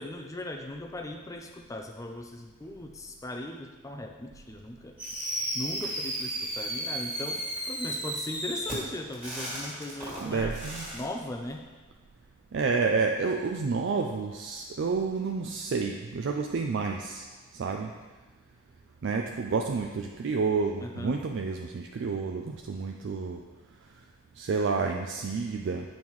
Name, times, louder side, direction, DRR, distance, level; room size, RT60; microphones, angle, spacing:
voice 1, 0.0-5.0 5.5-10.6 10.9-11.6 20.8-21.2, left 1 dB, 15° left, 4 dB, 0.4 m, -38 dB
Fireworks, 5.0-11.0, right 1 dB, 5° right, 1.7 m, -34 dB
voice 2, 10.2-10.9 12.5-17.3 17.5-17.9 19.0-23.4 24.4-26.0, right 4 dB, 55° right, 3 dB, 0.4 m, -29 dB
8.5 x 5.5 x 3.1 m, 1.3 s
head